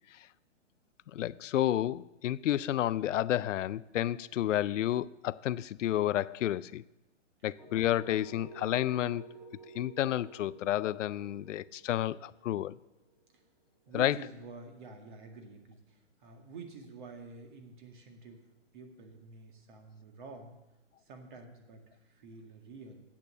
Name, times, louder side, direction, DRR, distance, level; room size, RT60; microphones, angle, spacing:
voice 1, 1.1-6.8 7.4-9.3 9.7-12.7 13.9-14.2, left 12 dB, 80° left, 0.5 m, -31 dB
sound 1, 7.6-13.4, right 3 dB, 5° right, 0.8 m, -52 dB
voice 2, 13.9-18.5 18.7-20.5 21.1-23.0, right 3 dB, 40° right, 1.8 m, -49 dB
10.5 x 8.6 x 6.5 m
hypercardioid pair, 160°, 37 cm